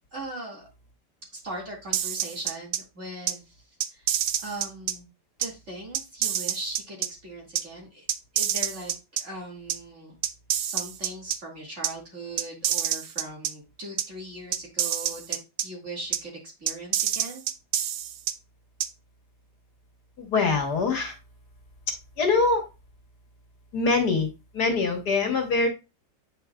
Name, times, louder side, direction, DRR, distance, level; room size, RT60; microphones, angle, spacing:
voice 1, 0.1-0.7 1.3-3.5 3.9-4.1 4.4-5.1 5.4-8.1 8.3-8.9 9.2-10.2 10.6-17.4, right 1 dB, 40° right, -2 dB, 2.3 m, -39 dB
sound 1, 1.9-2.8 3.3-3.4 3.8-4.9 5.4-5.5 5.9-7.1 7.6-7.7 8.1-9.2 9.7-9.8 10.2-11.4 11.8-11.9 12.4-13.5 14.0-14.1 14.5-15.6 16.1-16.2 16.7-18.3 18.8-18.9, right 11 dB, 70° right, 1.0 m, -27 dB
voice 2, 20.2-21.1 22.2-22.6 23.7-24.3 24.5-25.7, left 4 dB, 60° left, 3 dB, 1.8 m, -23 dB
8.8 x 4.8 x 2.3 m, 0.27 s
omnidirectional pair, 1.9 m